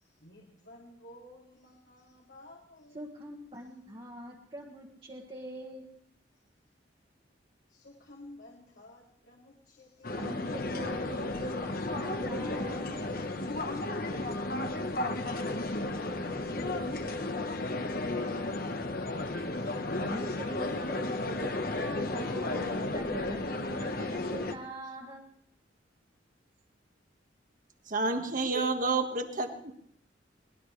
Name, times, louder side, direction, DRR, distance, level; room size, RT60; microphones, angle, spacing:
voice 1, 0.2-3.0 7.7-10.4, left 1 dB, 65° left, -2 dB, 2.7 m, -53 dB
voice 2, 2.9-5.9 10.2-13.0 20.0-25.3, equal, 30° right, -3 dB, 1.7 m, -44 dB
sound 1, 10.0-24.5, left 2 dB, 50° left, 1.3 m, -33 dB
voice 3, 27.9-29.7, right 3 dB, 45° right, 5 dB, 1.6 m, -29 dB
22.5 x 19.0 x 3.3 m, 0.64 s
head